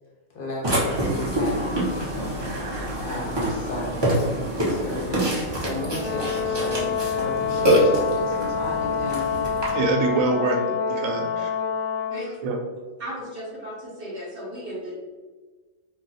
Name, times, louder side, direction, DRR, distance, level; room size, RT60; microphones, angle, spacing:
voice 1, 0.3-1.8 3.0-4.1 4.5-9.4 11.2-11.3, left 2 dB, 50° left, -3 dB, 0.7 m, -34 dB
Burping eructation, 0.6-9.7, equal, 30° right, 0.5 m, -26 dB
Brass instrument, 5.9-12.3, left 6 dB, 10° left, 0.8 m, -27 dB
voice 2, 9.7-11.5 12.4-12.6, right 3 dB, 75° right, 1 dB, 1.0 m, -25 dB
voice 3, 13.0-14.9, equal, 50° right, -6 dB, 0.8 m, -35 dB
2.3 x 2.3 x 3.9 m, 1.3 s
omnidirectional pair, 1.4 m